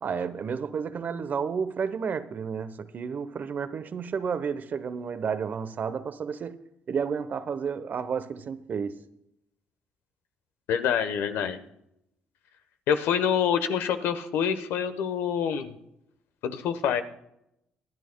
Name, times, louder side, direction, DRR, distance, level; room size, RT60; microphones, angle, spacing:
voice 1, 0.0-6.6 6.9-9.0, right 6 dB, 50° right, 0.8 m, -31 dB
voice 2, 10.7-11.6 12.9-15.7 16.4-17.0, left 8 dB, 80° left, 1.0 m, -26 dB
25.0 x 10.5 x 2.2 m
supercardioid pair, 75°, 4 cm